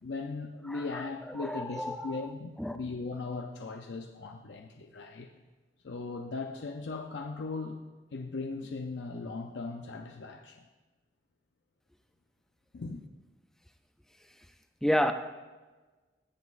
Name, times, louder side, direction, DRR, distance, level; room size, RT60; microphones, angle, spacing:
voice 1, 0.0-5.3 5.8-7.8 8.1-10.7 12.7-13.0, left 3 dB, 85° left, 0.5 m, -38 dB
voice 2, 0.7-1.1 1.4-2.3 2.6-2.8 14.8-15.1, equal, 5° left, 0.3 m, -30 dB
16.0 x 8.2 x 2.5 m
head